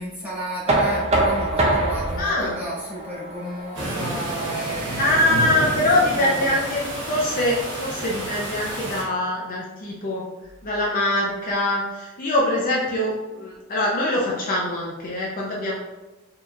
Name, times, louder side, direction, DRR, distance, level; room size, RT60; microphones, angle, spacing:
voice 1, 0.0-5.3 5.6-6.6, equal, 10° right, -9 dB, 1.4 m, -32 dB
Knock, 0.7-6.5, right 2 dB, 30° right, 0.5 m, -26 dB
voice 2, 2.2-2.6 5.0-6.8 7.1-10.2 10.6-15.7, left 1 dB, 40° left, -4 dB, 0.5 m, -23 dB
sound 1, 3.7-9.0, right 1 dB, 55° right, 1.1 m, -30 dB
4.4 x 2.9 x 2.4 m, 1.1 s
head